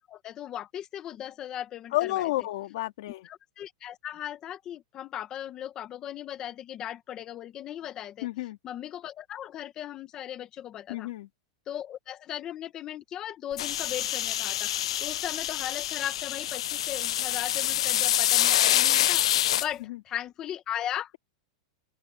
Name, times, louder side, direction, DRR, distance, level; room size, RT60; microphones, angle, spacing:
voice 1, 0.1-2.3 3.2-11.1 11.7-21.1, left 11 dB, 20° left, 1.5 m, -38 dB
voice 2, 1.9-3.3 8.2-8.6 10.9-11.3 19.9-20.0, left 17 dB, 50° left, 2.9 m, -30 dB
sound 1, 13.6-19.7, left 12 dB, 70° left, 0.3 m, -26 dB
open air
supercardioid pair, 175°, 3 cm